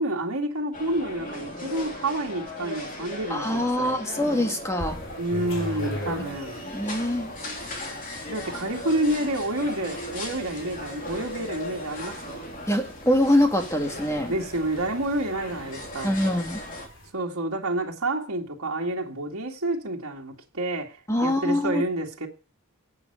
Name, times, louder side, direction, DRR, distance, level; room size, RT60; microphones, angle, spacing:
voice 1, 0.0-4.0 5.2-6.6 8.3-12.4 14.3-16.4 17.1-22.3, right 1 dB, 75° right, 2.2 m, -29 dB
sound 1, 0.7-16.9, left 1 dB, 35° left, 2.9 m, -38 dB
voice 2, 3.3-5.0 6.1-6.2 6.7-7.3 12.7-14.3 16.0-16.6 21.1-21.8, left 1 dB, 15° left, 2.0 m, -24 dB
sound 2, 4.8-17.1, equal, 60° left, 3.7 m, -41 dB
11.5 x 8.6 x 6.8 m
head